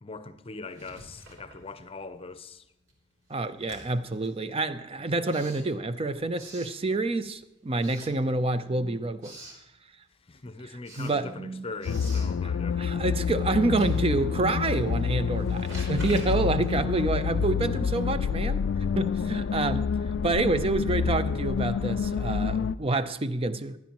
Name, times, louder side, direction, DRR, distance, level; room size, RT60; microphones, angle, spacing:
voice 1, 0.0-2.6 10.3-13.0, left 3 dB, 30° left, 0.7 m, -41 dB
Writing, 0.6-2.2 2.5-7.3 7.7-8.7 9.0-9.7 10.1-17.7, right 1 dB, 75° right, 3.6 m, -48 dB
voice 2, 3.3-9.4 10.6-11.7 12.8-18.6 19.0-19.9 20.2-23.8, right 2 dB, 30° right, 0.5 m, -28 dB
sound 1, 11.9-22.8, left 6 dB, 65° left, 0.4 m, -28 dB
17.5 x 11.5 x 3.0 m
head